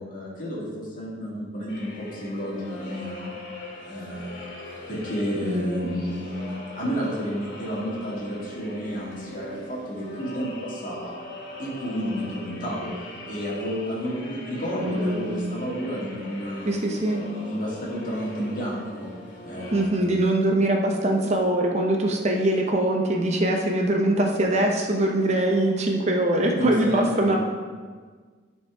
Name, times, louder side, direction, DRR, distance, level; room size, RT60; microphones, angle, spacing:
voice 1, 0.0-3.3 3.8-11.2 11.6-12.9 13.2-16.7 17.4-19.1 19.4-20.2 26.6-27.4, equal, 45° left, -6 dB, 2.2 m, -31 dB
sound 1, 1.7-19.8, left 1 dB, 75° left, 2.1 m, -40 dB
voice 2, 5.4-5.9 14.8-15.4 16.6-17.2 19.7-27.4, right 1 dB, 35° right, 1 dB, 0.7 m, -23 dB
11.5 x 4.3 x 3.4 m, 1.5 s
head